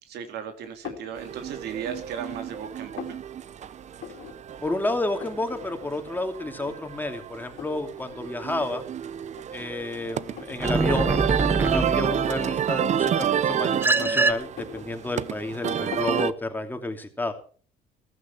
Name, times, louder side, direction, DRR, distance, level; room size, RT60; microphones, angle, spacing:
voice 1, 0.0-3.2, right 7 dB, 75° right, 7 dB, 2.6 m, -36 dB
sound 1, 0.8-1.2 1.7-2.3 2.6-3.2 4.0-4.4 4.7-4.8 5.0-5.6 5.9-6.0 6.6-7.1 7.6-7.8 8.7-8.8 9.3-10.6 11.0-11.3 12.0-12.4 13.4-14.0 14.4-15.4 15.9-16.2, left 8 dB, 65° left, 3.0 m, -41 dB
sound 2, 1.2-16.3, right 9 dB, 45° right, 0.8 m, -30 dB
voice 2, 4.6-8.8 9.5-11.2 11.7-17.3, left 2 dB, 10° left, 5 dB, 2.7 m, -30 dB
sound 3, 10.6-12.4 13.8-14.3, right 3 dB, 15° right, 1.2 m, -24 dB
15.0 x 14.5 x 4.5 m, 0.41 s
cardioid pair, 110°, 17 cm